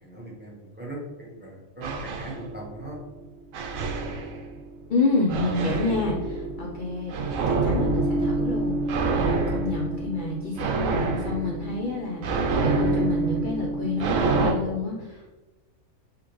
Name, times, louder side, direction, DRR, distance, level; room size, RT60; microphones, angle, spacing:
voice 1, 0.0-3.0, right 1 dB, 10° right, -5 dB, 0.9 m, -39 dB
sound 1, 1.8-3.0 3.5-4.8 5.3-14.5, right 3 dB, 80° right, 1.0 m, -27 dB
voice 2, 4.9-8.8 9.1-15.3, left 3 dB, 50° left, -2 dB, 0.6 m, -29 dB
5.0 x 3.3 x 3.0 m, 1.1 s
omnidirectional pair, 1.4 m